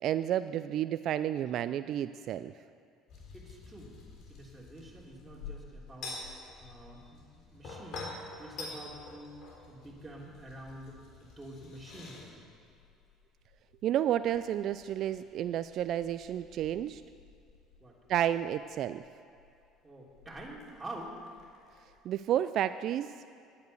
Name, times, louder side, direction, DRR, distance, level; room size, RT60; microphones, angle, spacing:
voice 1, 0.0-2.5 13.8-17.0 18.1-19.0 22.0-23.1, right 11 dB, 60° right, 13 dB, 0.3 m, -31 dB
sound 1, 3.1-22.0, left 3 dB, 60° left, 3.6 m, -49 dB
voice 2, 3.3-3.9 4.3-9.3 9.7-12.5 17.8-18.0 19.8-21.2, right 1 dB, 15° right, -4 dB, 3.3 m, -47 dB
10.5 x 9.4 x 8.2 m, 2.5 s
hypercardioid pair, 75°, 0 cm